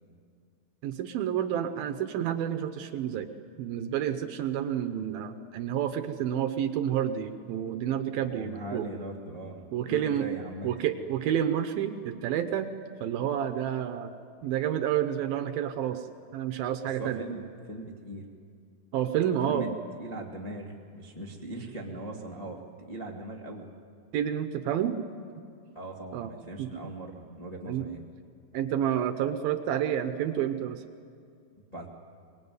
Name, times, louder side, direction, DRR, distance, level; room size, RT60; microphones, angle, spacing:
voice 1, 0.8-3.3 3.6-8.9 9.7-10.3 10.6-12.7 13.0-14.1 14.4-16.1 16.3-17.2 18.9-19.7 24.1-25.0 26.1-26.3 26.6-26.7 27.7-27.9 28.5-30.8, right 10 dB, 75° right, 8 dB, 2.3 m, -29 dB
voice 2, 8.1-10.7 17.0-18.3 19.5-19.7 20.0-23.7 25.7-28.0 31.7-31.9, right 1 dB, 65° left, -2 dB, 0.4 m, -40 dB
25.5 x 21.0 x 9.5 m, 2.3 s
omnidirectional pair, 5.0 m